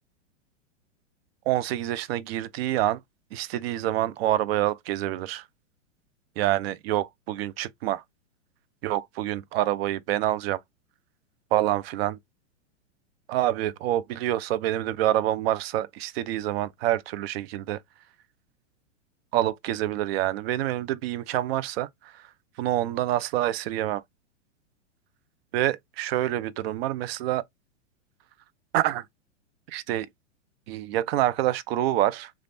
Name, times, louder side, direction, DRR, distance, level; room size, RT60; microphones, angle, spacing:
voice 1, 1.5-3.0 3.3-5.4 6.4-8.0 8.8-10.6 11.5-12.2 13.3-17.8 19.3-22.3 22.6-24.0 25.5-27.4 28.7-29.1 29.7-30.1 30.7-32.3, right 13 dB, 55° right, 0.5 m, -27 dB
3.3 x 2.4 x 2.6 m
hypercardioid pair, 125°, 37 cm